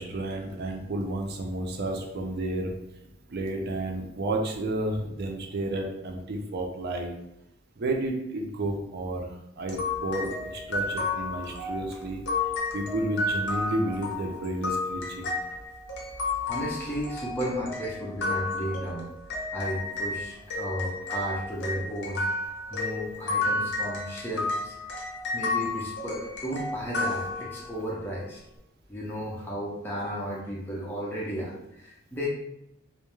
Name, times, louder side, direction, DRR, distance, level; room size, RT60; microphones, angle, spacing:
voice 1, 0.0-2.7 3.3-7.1 7.8-9.3 9.6-12.2 12.7-15.3, right 1 dB, 55° right, 2 dB, 0.4 m, -31 dB
sound 1, 9.7-20.2 20.5-27.9, left 3 dB, 60° left, 0.6 m, -32 dB
voice 2, 16.4-19.1 19.5-22.2 22.7-24.7 25.3-28.4 28.9-32.3, equal, 10° left, -6 dB, 0.4 m, -34 dB
2.3 x 2.1 x 3.0 m, 0.82 s
head